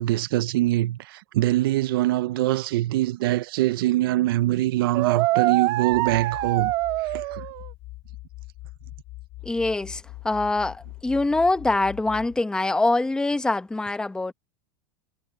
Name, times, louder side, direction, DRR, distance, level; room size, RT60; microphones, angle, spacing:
voice 1, 0.0-6.7 7.0-7.5, right 16 dB, 75° right, 0.7 m, -23 dB
sound 1, 4.9-7.7, right 18 dB, 45° right, 1.7 m, -25 dB
sound 2, 5.9-12.4, left 19 dB, 45° left, 2.7 m, -42 dB
voice 2, 9.4-14.3, left 2 dB, 5° left, 1.1 m, -24 dB
supercardioid pair, 150°, 12 cm